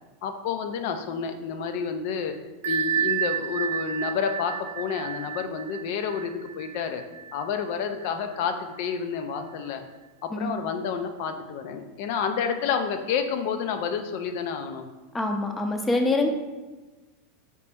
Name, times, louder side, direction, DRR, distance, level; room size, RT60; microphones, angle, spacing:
voice 1, 0.2-2.4 2.7-7.0 7.3-9.8 10.2-14.9, left 6 dB, 60° left, 7 dB, 0.4 m, -29 dB
Bell, 2.6-8.1, right 8 dB, 70° right, 0.3 m, -31 dB
voice 2, 15.1-16.3, left 2 dB, 15° left, 4 dB, 0.6 m, -25 dB
4.1 x 2.9 x 3.5 m, 1.2 s
hypercardioid pair, 100°, 0 cm